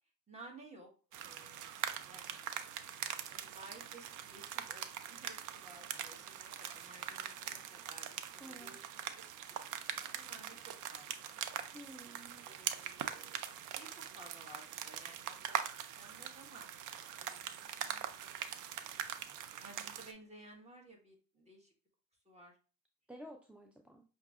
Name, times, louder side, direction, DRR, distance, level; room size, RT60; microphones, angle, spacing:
voice 1, 0.3-0.9 1.2-2.4 2.9-8.8 9.1-9.2 9.5-11.4 12.4-13.4 13.7-15.6 15.9-16.7 17.2-19.3 19.6-21.7 22.2-22.6, right 2 dB, 20° right, 0 dB, 1.4 m, -57 dB
sound 1, 1.1-20.1, right 10 dB, 85° right, 0.5 m, -43 dB
voice 2, 8.4-8.8 11.7-12.5 23.1-24.0, equal, 5° right, 2 dB, 0.4 m, -52 dB
5.6 x 2.7 x 2.4 m, 0.36 s
cardioid pair, 90°, 30 cm